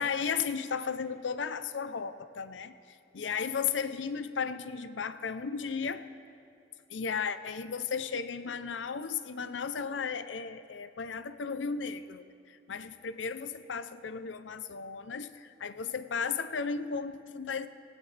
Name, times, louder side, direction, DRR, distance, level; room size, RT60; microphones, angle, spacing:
voice 1, 0.0-6.1 6.9-17.7, left 6 dB, 80° left, 12 dB, 0.6 m, -35 dB
19.5 x 18.0 x 3.3 m, 2.6 s
head